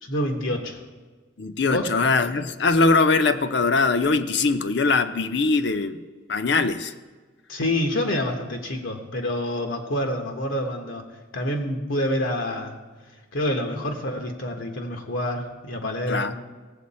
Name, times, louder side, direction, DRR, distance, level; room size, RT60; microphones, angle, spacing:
voice 1, 0.0-0.8 1.7-1.9 7.5-11.1 11.3-12.8 13.3-16.3, left 1 dB, 85° left, 2 dB, 1.3 m, -27 dB
voice 2, 1.4-6.0 6.3-6.9 16.1-16.3, left 3 dB, 60° left, 9 dB, 0.6 m, -21 dB
17.5 x 7.8 x 4.3 m, 1.4 s
head